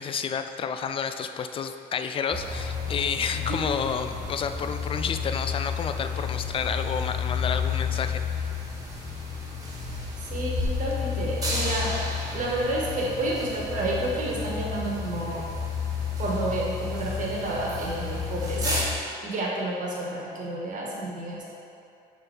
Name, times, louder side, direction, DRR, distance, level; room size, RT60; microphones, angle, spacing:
voice 1, 0.0-8.5, left 6 dB, 30° left, 8 dB, 0.3 m, -30 dB
sound 1, 2.3-18.8, left 5 dB, 20° right, 1.3 m, -31 dB
voice 2, 10.3-12.0 12.3-15.5 16.2-18.8 19.2-21.4, right 2 dB, 50° right, -3 dB, 1.4 m, -30 dB
6.5 x 3.8 x 4.5 m, 2.6 s
cardioid pair, 110°, 17 cm